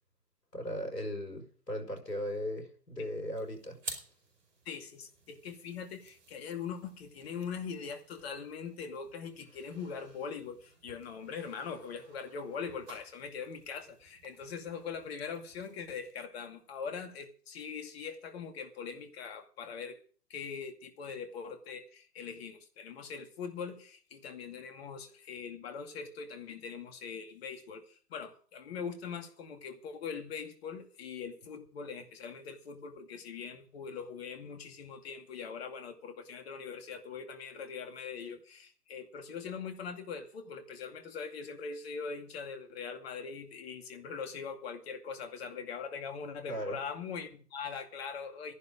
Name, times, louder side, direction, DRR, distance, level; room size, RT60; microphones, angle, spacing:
voice 1, 0.5-3.8 46.5-46.8, equal, 90° left, 5.0 m, -37 dB
sound 1, 3.3-16.1, right 3 dB, 50° right, 5.0 m, -52 dB
voice 2, 4.7-20.0 20.3-48.5, left 6 dB, 40° left, 2.4 m, -42 dB
14.0 x 11.0 x 5.1 m
figure-of-eight pair, 125°, 47 cm